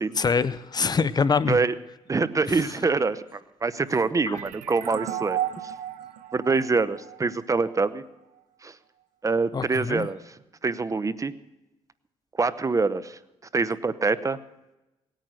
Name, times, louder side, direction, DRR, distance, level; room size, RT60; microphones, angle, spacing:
voice 1, 0.2-1.6 4.3-4.4 9.5-10.1, left 5 dB, 35° left, 17 dB, 0.6 m, -24 dB
voice 2, 2.1-5.7 6.3-8.0 8.6-8.8 9.2-11.3 12.4-13.2 13.5-14.4, right 4 dB, 25° right, 15 dB, 0.8 m, -25 dB
sound 1, 4.3-7.8, right 12 dB, 85° right, 1.0 m, -34 dB
18.5 x 9.1 x 6.2 m, 0.97 s
supercardioid pair, 70°, 12 cm